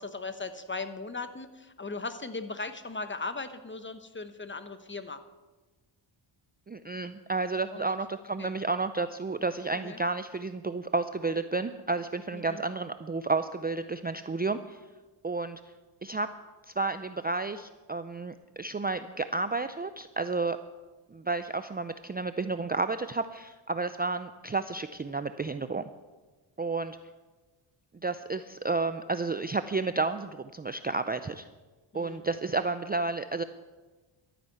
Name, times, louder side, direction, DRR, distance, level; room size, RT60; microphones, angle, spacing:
voice 1, 0.0-5.2 7.7-7.9 8.4-8.5 9.7-10.0 12.3-12.6 31.9-32.2, left 3 dB, 25° left, 10 dB, 1.1 m, -38 dB
voice 2, 6.7-14.8 15.2-15.6 16.0-16.3 16.7-20.6 21.1-25.9 26.6-27.0 28.0-31.5 31.9-33.4, right 3 dB, 20° right, 10 dB, 0.5 m, -31 dB
12.5 x 10.0 x 8.0 m, 1.2 s
cardioid pair, 90°, 50 cm